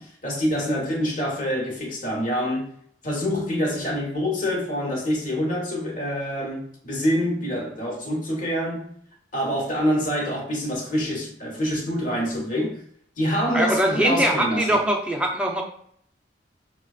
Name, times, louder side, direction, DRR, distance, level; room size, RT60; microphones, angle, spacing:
voice 1, 0.0-2.7 3.0-8.9 9.3-12.8 13.2-14.8, equal, 45° left, 1.3 m, -26 dB
voice 2, 13.5-15.6, equal, 5° right, 0.6 m, -22 dB
6.0 x 2.3 x 2.4 m
head